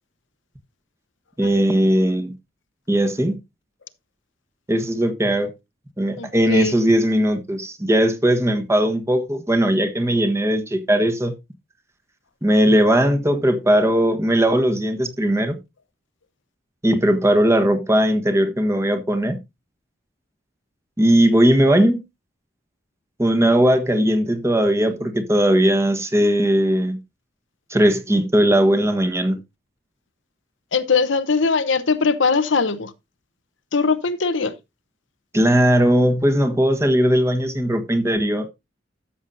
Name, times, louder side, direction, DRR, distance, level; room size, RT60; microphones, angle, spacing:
voice 1, 1.4-2.3 2.9-3.4 4.7-5.5 6.0-11.3 12.4-15.6 16.8-19.4 21.0-22.0 23.2-27.0 27.7-29.4 35.3-38.5, equal, 15° right, 1.3 m, -18 dB
voice 2, 6.2-6.7 30.7-32.9 33.7-34.5, left 4 dB, 75° left, 0.9 m, -20 dB
13.0 x 7.3 x 2.6 m
head